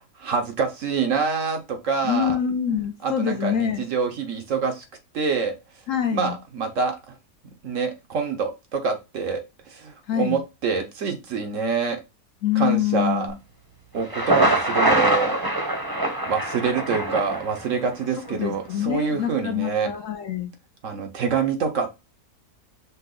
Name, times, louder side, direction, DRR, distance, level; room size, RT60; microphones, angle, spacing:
voice 1, 0.2-2.4 3.0-4.8 5.1-5.5 6.1-7.2 7.6-12.0 12.6-13.3 13.9-15.3 16.2-19.9 20.8-21.9, right 5 dB, 60° right, 5 dB, 1.0 m, -26 dB
voice 2, 2.0-3.8 5.9-6.4 10.1-10.4 12.4-13.4 18.3-20.5, left 9 dB, 60° left, 6 dB, 1.0 m, -25 dB
Thunder, 14.0-17.9, right 1 dB, 20° right, 0.8 m, -23 dB
5.5 x 2.3 x 3.8 m, 0.25 s
omnidirectional pair, 1.7 m